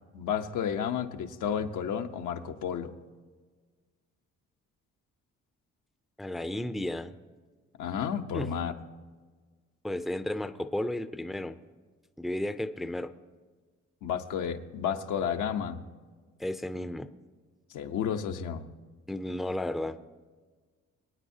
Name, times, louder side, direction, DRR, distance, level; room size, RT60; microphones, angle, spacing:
voice 1, 0.1-2.9 7.8-8.7 14.0-15.8 17.7-18.7, left 8 dB, 85° left, 6 dB, 0.9 m, -31 dB
voice 2, 6.2-7.1 8.3-8.5 9.8-11.6 12.2-13.1 16.4-17.1 19.1-20.1, left 1 dB, ahead, 10 dB, 0.4 m, -33 dB
23.5 x 9.2 x 2.8 m, 1.4 s
cardioid pair, 90°, 30 cm